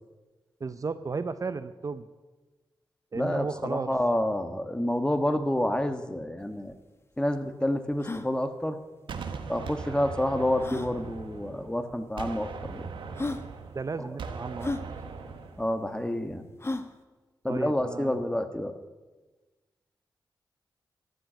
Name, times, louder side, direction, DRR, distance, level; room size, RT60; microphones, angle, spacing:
voice 1, 0.6-2.1 3.1-3.9 13.7-14.7 17.4-18.4, right 4 dB, 45° right, 12 dB, 0.5 m, -34 dB
voice 2, 3.1-6.7 7.2-8.8 9.5-12.9 15.6-16.5 17.4-18.7, left 1 dB, 10° left, 8 dB, 1.3 m, -28 dB
sound 1, 6.4-6.5 6.7-6.8 7.3-7.4 7.9-8.3 9.6-9.7 10.6-10.9 11.9-12.0 12.7-12.8 13.1-13.5 14.6-14.8 16.6-16.9, left 2 dB, 30° left, 1.0 m, -33 dB
Gunshot gunfire, 9.1-11.8 12.2-15.7, right 5 dB, 85° right, 1.1 m, -39 dB
13.0 x 7.9 x 9.1 m, 1.2 s
cardioid pair, 60°, 8 cm